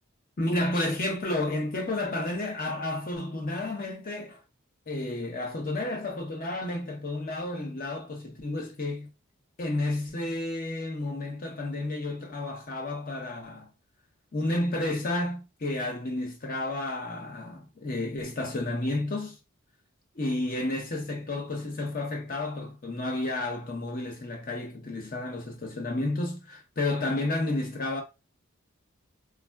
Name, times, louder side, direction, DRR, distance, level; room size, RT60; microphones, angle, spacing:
voice 1, 0.4-4.4 4.9-9.1 9.6-13.7 14.3-19.4 20.1-28.0, left 2 dB, 40° left, 0.6 m, -31 dB
3.4 x 2.0 x 2.2 m
head